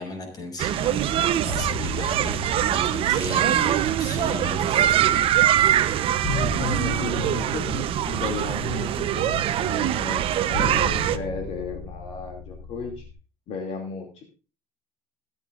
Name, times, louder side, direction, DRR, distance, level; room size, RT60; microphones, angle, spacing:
voice 1, 0.0-2.4 2.7-5.3, left 2 dB, 35° left, 3 dB, 6.3 m, -36 dB
sound 1, 0.6-11.2, right 11 dB, 50° right, 0.8 m, -23 dB
sound 2, 1.5-13.1, left 2 dB, 15° left, 5.8 m, -36 dB
voice 2, 6.2-13.0 13.5-14.2, left 5 dB, 55° left, 2 dB, 2.7 m, -34 dB
22.0 x 8.7 x 2.5 m, 0.34 s
cardioid pair, 130°, 12 cm